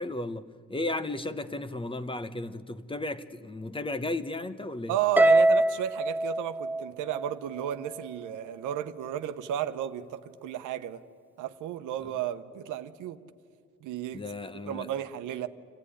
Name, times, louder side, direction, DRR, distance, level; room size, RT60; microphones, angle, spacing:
voice 1, 0.0-5.0 14.1-14.9, left 2 dB, 15° left, 0.9 m, -34 dB
voice 2, 4.9-11.0 11.4-13.2 13.8-14.2 14.7-15.5, right 11 dB, 90° right, 0.9 m, -33 dB
Harp, 5.2-7.6, right 2 dB, 5° right, 0.6 m, -23 dB
27.5 x 14.0 x 10.0 m
cardioid pair, 90°, 30 cm